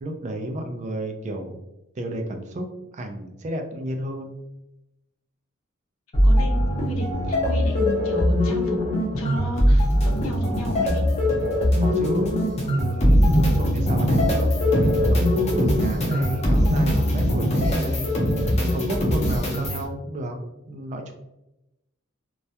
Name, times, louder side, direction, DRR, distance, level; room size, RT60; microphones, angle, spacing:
voice 1, 0.0-1.6 2.0-2.7 2.9-4.3 11.8-12.4 12.7-14.7 15.1-18.1 18.7-20.4 20.7-21.1, right 1 dB, 35° right, 4 dB, 0.3 m, -32 dB
sound 1, 6.1-19.9, equal, 30° left, 0.5 m, -21 dB
voice 2, 6.2-8.8 9.1-11.0, equal, 90° left, 2 dB, 0.5 m, -33 dB
2.2 x 2.1 x 2.7 m, 0.92 s
head